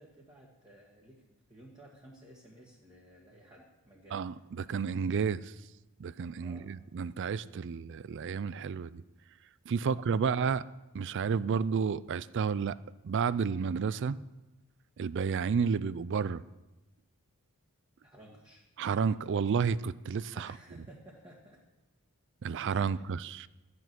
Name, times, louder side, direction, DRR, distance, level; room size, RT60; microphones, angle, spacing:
voice 1, 0.0-4.3 6.4-6.7 9.8-10.3 18.0-18.7 20.3-21.6 22.8-23.1, right 1 dB, 20° right, -3 dB, 1.6 m, -55 dB
voice 2, 4.1-5.5 6.0-9.0 9.7-10.6 10.9-12.8 13.0-14.2 15.0-16.4 18.8-20.5 22.4-23.5, right 6 dB, 55° right, 18 dB, 0.4 m, -31 dB
13.5 x 9.6 x 6.1 m, 1.0 s
head